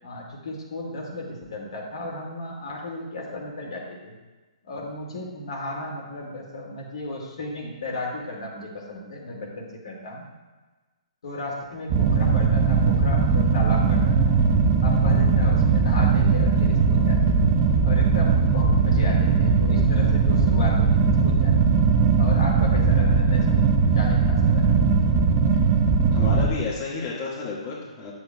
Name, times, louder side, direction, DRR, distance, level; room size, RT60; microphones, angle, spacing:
voice 1, 0.0-4.2 4.6-10.2 11.2-14.3 14.8-17.5 17.8-21.6 22.2-24.6, left 2 dB, 60° left, -2 dB, 2.3 m, -35 dB
sound 1, 11.9-26.5, right 5 dB, 30° right, 0.9 m, -19 dB
voice 2, 26.1-28.1, left 4 dB, 35° left, -5 dB, 1.9 m, -31 dB
10.5 x 8.0 x 2.4 m, 1.2 s
figure-of-eight pair, 130°, 4 cm